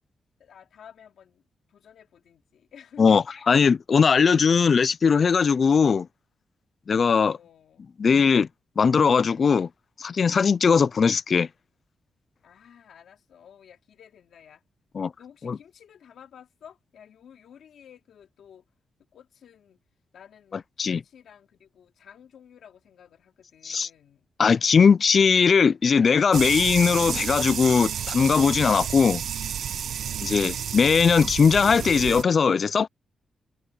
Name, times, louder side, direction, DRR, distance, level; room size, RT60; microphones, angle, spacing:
voice 1, 0.4-1.4 1.7-3.2 7.2-7.9 12.4-14.6 15.2-18.6 19.1-19.8 20.1-24.3 30.0-30.7, left 8 dB, 80° left, 2.7 m, -52 dB
voice 2, 3.0-6.1 6.9-7.4 8.0-8.5 8.8-9.7 10.0-11.5 15.0-15.1 15.5-15.6 20.8-21.0 23.7-23.9 24.4-29.2 30.2-32.9, left 6 dB, 45° left, 0.4 m, -20 dB
sound 1, 26.3-32.2, right 9 dB, 80° right, 1.3 m, -31 dB
wide cardioid pair, 135°, 0 cm